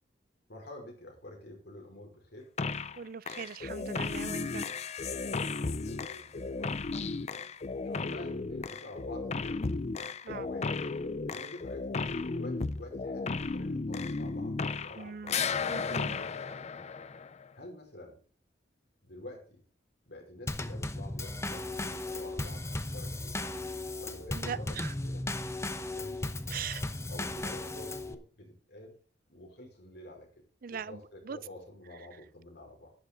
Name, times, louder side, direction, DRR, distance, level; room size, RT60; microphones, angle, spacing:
voice 1, 0.5-2.5 5.4-6.8 7.8-9.6 10.3-10.9 11.3-15.3 15.7-16.9 17.5-18.2 19.0-19.6 20.1-25.2 25.6-26.2 27.1-29.0 29.3-30.3 30.7-32.9, left 1 dB, 65° left, 5.1 m, -49 dB
sound 1, 2.6-3.0 3.3-15.0 15.3-17.5, left 4 dB, 40° left, 0.5 m, -34 dB
voice 2, 3.0-4.7 10.2-10.5 15.0-15.4 15.7-16.2 24.3-24.9 26.5-26.9 30.6-31.4, right 7 dB, 55° right, 0.5 m, -40 dB
Drum kit / Snare drum / Bass drum, 20.5-28.2, left 2 dB, 15° left, 0.8 m, -36 dB
11.5 x 10.5 x 3.9 m
head